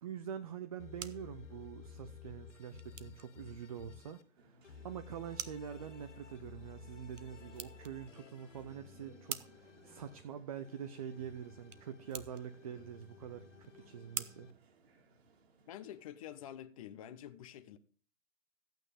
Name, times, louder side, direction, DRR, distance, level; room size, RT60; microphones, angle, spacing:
voice 1, 0.0-14.5, right 8 dB, 30° right, 0.7 m, -45 dB
sound 1, 0.5-15.5, right 7 dB, 65° right, 1.2 m, -50 dB
sound 2, 0.8-4.2 4.6-10.2 10.6-14.5, left 6 dB, 65° left, 2.1 m, -55 dB
sound 3, 4.4-16.0, right 4 dB, 50° right, 2.2 m, -65 dB
voice 2, 15.7-17.8, left 11 dB, 25° left, 0.8 m, -48 dB
13.5 x 9.2 x 5.0 m
hypercardioid pair, 150°, 40 cm